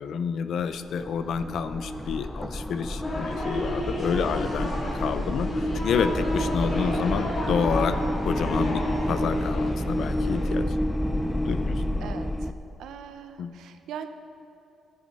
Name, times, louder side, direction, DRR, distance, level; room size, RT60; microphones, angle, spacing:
voice 1, 0.0-8.0 8.2-10.7 11.5-11.8 13.4-13.5, left 6 dB, 70° left, 11 dB, 0.6 m, -29 dB
sound 1, 0.7-12.5, left 1 dB, 5° left, 0.5 m, -29 dB
sound 2, 3.0-10.5, left 1 dB, 35° left, 3.1 m, -32 dB
voice 2, 12.0-12.3 12.8-14.1, right 8 dB, 80° right, 8 dB, 0.7 m, -40 dB
14.0 x 9.3 x 5.5 m, 2.7 s
cardioid pair, 90°, 0 cm